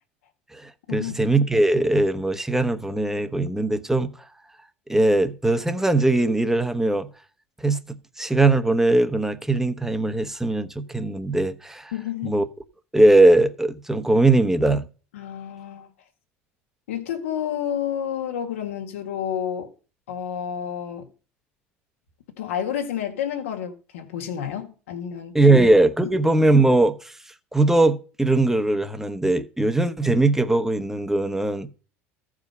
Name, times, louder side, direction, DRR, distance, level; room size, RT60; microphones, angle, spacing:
voice 1, 0.5-4.1 4.9-7.1 7.6-7.8 8.2-11.9 12.2-12.4 12.9-14.8 25.3-27.1 27.5-31.7, right 2 dB, 5° right, 1.0 m, -20 dB
voice 2, 11.9-12.5 15.1-15.9 16.9-19.7 20.1-21.1 22.4-25.4 26.0-26.2, left 9 dB, 85° left, 1.7 m, -30 dB
14.5 x 4.9 x 5.4 m
hypercardioid pair, 85°, 7 cm